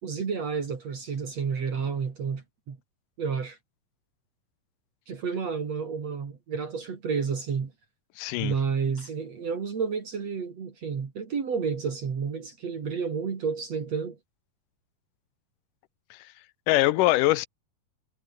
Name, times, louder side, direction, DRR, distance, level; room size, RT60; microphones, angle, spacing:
voice 1, 0.0-2.8 3.2-3.6 5.1-7.7 8.4-14.2, right 6 dB, 50° right, 3.9 m, -30 dB
voice 2, 8.2-8.5 16.1-16.3 16.7-17.5, left 18 dB, 80° left, 2.2 m, -23 dB
omnidirectional pair, 3.9 m